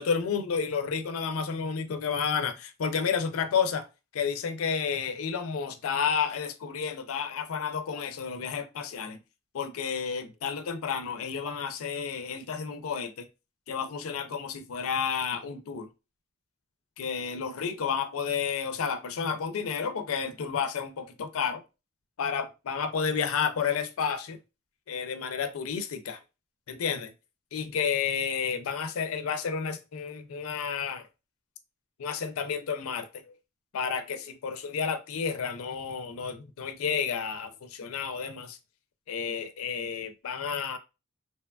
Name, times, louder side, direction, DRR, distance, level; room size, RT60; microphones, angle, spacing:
voice 1, 0.0-3.9 4.1-9.2 9.5-13.3 13.7-15.9 17.0-21.6 22.2-24.4 24.9-26.2 26.7-27.1 27.5-31.1 32.0-33.3 33.7-38.6 39.1-40.8, left 6 dB, 75° left, 0.4 m, -31 dB
2.7 x 2.2 x 2.2 m
head